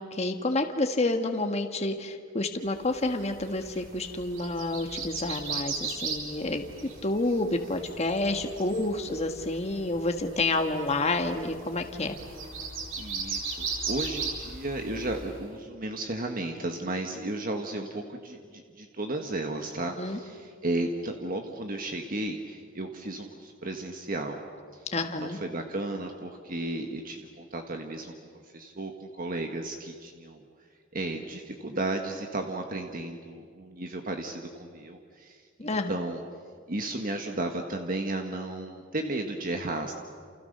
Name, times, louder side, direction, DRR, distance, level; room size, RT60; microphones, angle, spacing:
voice 1, 0.0-6.6 7.0-12.2 20.0-20.2 24.9-25.4 35.6-35.9, left 2 dB, 35° left, 5 dB, 1.5 m, -29 dB
sound 1, 3.0-15.4, right 4 dB, 70° right, 4.0 m, -38 dB
voice 2, 13.0-24.4 24.7-28.1 28.5-30.4 30.9-36.2 36.7-39.9, right 2 dB, 45° right, 4 dB, 1.6 m, -34 dB
29.5 x 29.0 x 6.8 m, 2.1 s
head